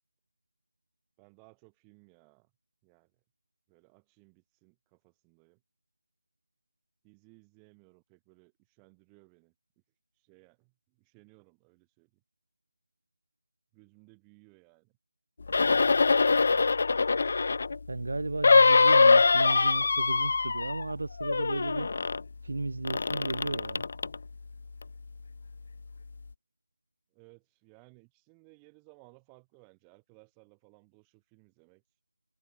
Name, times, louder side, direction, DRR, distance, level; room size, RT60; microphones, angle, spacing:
voice 1, 1.2-2.5 2.8-3.2 3.7-5.6 7.0-9.5 10.1-12.2 13.7-15.0 27.1-31.8, right 40 dB or more, 15° right, 7.9 m, -60 dB
sound 1, 15.5-17.8 18.4-20.9 21.2-22.2 22.9-24.2 24.8-24.9, left 4 dB, 45° left, 0.4 m, -23 dB
voice 2, 17.9-21.9 22.4-23.9, right 2 dB, 60° right, 1.4 m, -34 dB
figure-of-eight pair, 155°, 0 cm